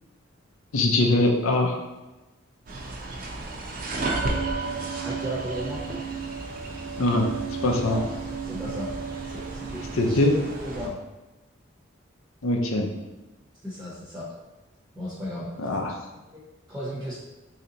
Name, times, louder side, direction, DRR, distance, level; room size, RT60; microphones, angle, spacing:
voice 1, 0.7-1.8 7.0-7.3 7.6-8.0 10.0-10.3 12.4-12.9 15.6-16.0, left 2 dB, 85° left, 2 dB, 0.6 m, -22 dB
sound 1, 2.7-10.9, right 3 dB, 45° right, 0.5 m, -32 dB
voice 2, 5.0-5.8 7.8-8.0 8.4-8.9 9.2-11.0 13.6-14.3 14.9-15.5 16.3-16.4 16.7-17.2, equal, 5° right, -7 dB, 0.7 m, -35 dB
3.2 x 2.8 x 3.9 m, 1.1 s
head